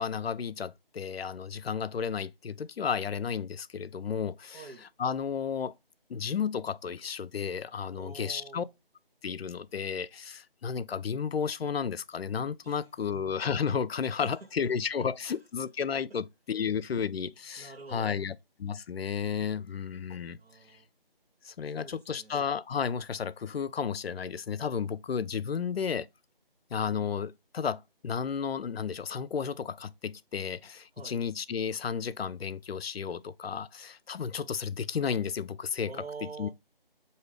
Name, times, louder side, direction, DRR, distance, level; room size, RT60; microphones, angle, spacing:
voice 1, 0.0-4.6 5.0-5.7 6.1-8.6 9.2-20.4 21.4-26.1 26.7-35.9 36.4-36.5, left 7 dB, 85° left, 0.5 m, -33 dB
voice 2, 4.5-4.9 7.9-8.7 12.6-12.9 14.2-15.5 16.1-16.2 17.6-18.3 20.3-20.9 21.7-22.4 30.9-31.2 35.8-36.5, right 4 dB, 80° right, 1.1 m, -47 dB
4.9 x 2.7 x 3.1 m
figure-of-eight pair, 170°, 30 cm